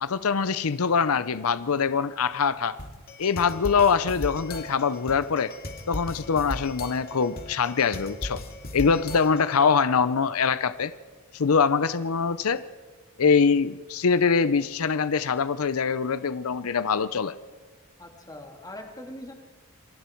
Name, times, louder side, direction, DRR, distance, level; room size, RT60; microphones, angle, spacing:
voice 1, 0.0-2.8 3.2-5.5 5.9-8.4 8.7-10.9 11.3-12.6 13.2-17.3, left 5 dB, 85° left, 14 dB, 0.6 m, -23 dB
sound 1, 2.8-9.6, left 1 dB, 45° left, 2.3 m, -37 dB
voice 2, 18.0-19.3, left 1 dB, 20° left, 2 dB, 2.5 m, -41 dB
27.5 x 22.0 x 4.6 m, 1.4 s
head